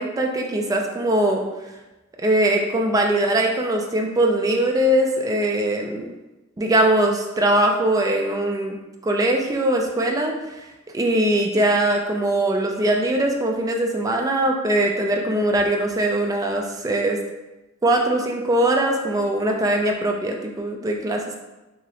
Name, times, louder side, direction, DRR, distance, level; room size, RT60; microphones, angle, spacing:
voice 1, 0.0-1.4 2.2-6.1 6.6-8.8 9.0-10.3 10.9-17.2 17.8-21.3, right 1 dB, 15° right, 2 dB, 0.3 m, -21 dB
3.0 x 2.7 x 2.8 m, 1.1 s
head